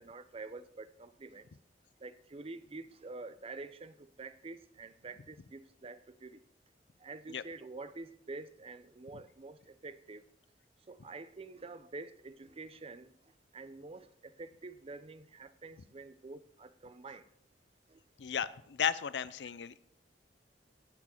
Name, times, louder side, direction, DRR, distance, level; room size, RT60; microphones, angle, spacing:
voice 1, 0.0-1.5 2.0-6.4 7.0-10.2 10.9-13.1 13.5-17.2 17.9-18.0, right 3 dB, 35° right, 0.6 m, -47 dB
voice 2, 18.2-19.8, left 8 dB, 85° left, 0.5 m, -34 dB
18.0 x 6.2 x 4.5 m
head